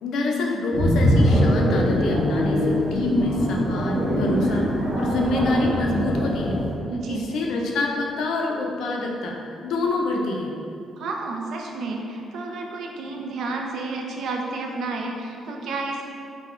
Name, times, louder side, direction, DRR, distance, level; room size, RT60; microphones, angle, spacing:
voice 1, 0.0-4.7 4.9-6.6 7.1-9.3 9.6-10.5, left 2 dB, 75° left, 0 dB, 0.4 m, -26 dB
sound 1, 0.7-6.7, equal, 45° right, 0.7 m, -22 dB
voice 2, 6.9-7.3 11.0-16.1, right 3 dB, 75° right, 1 dB, 0.3 m, -31 dB
3.4 x 2.1 x 2.4 m, 2.5 s
cardioid pair, 90°, 0 cm